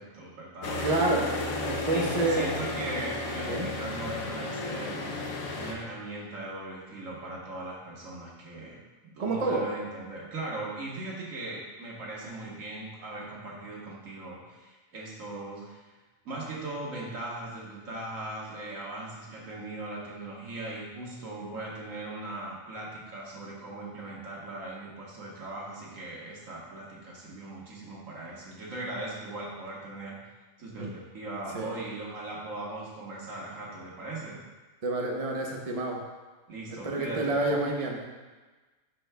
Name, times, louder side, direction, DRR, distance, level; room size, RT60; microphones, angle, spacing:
voice 1, 0.0-0.9 1.7-5.0 5.5-8.8 9.0-15.9 16.3-30.2 30.6-34.4 36.5-37.4, right 2 dB, 75° right, -4 dB, 1.8 m, -39 dB
sound 1, 0.6-5.7, left 2 dB, 80° left, 1.2 m, -33 dB
voice 2, 0.8-1.3 1.6-2.5 3.5-3.7 9.2-9.7 30.8-30.9 31.5-31.7 34.8-36.0 36.7-38.1, right 2 dB, 35° right, 0 dB, 0.7 m, -28 dB
11.0 x 4.6 x 2.2 m, 1.3 s
omnidirectional pair, 1.4 m